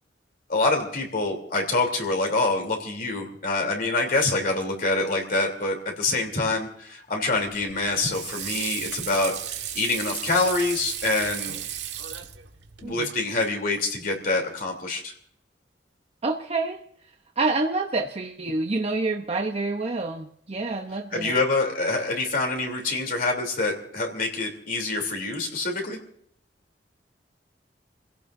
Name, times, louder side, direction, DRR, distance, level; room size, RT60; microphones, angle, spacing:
voice 1, 0.5-11.6 12.8-15.1 21.1-26.0, left 3 dB, 55° left, 2 dB, 3.3 m, -26 dB
Water / Sink (filling or washing), 7.5-12.9, right 10 dB, 90° right, 1.6 m, -35 dB
voice 2, 16.2-16.8 17.4-21.4, right 3 dB, 35° right, 3 dB, 0.9 m, -27 dB
29.5 x 16.5 x 2.7 m, 0.67 s
head